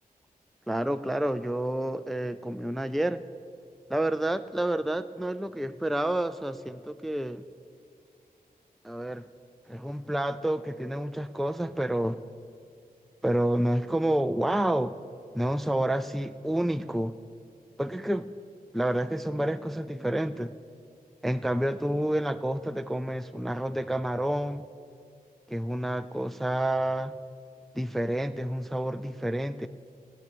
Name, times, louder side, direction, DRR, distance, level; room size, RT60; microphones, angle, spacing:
voice 1, 0.7-3.2 3.9-7.5 8.8-9.2 9.7-12.2 13.2-14.9 15.3-17.1 17.8-18.3 18.7-20.6 21.2-24.6 25.5-27.1 27.8-29.7, right 1 dB, ahead, 11 dB, 0.3 m, -29 dB
15.5 x 9.5 x 6.9 m, 2.3 s
wide cardioid pair, 135°, 16 cm